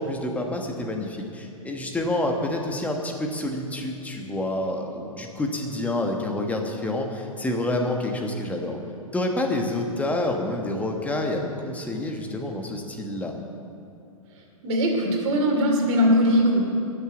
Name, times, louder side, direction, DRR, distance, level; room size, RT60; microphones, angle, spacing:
voice 1, 0.0-8.8 9.1-13.3, left 1 dB, 10° left, 2 dB, 1.3 m, -28 dB
voice 2, 14.6-16.6, equal, 50° right, -1 dB, 2.8 m, -20 dB
12.5 x 6.9 x 8.2 m, 2.6 s
figure-of-eight pair, 110°, 18 cm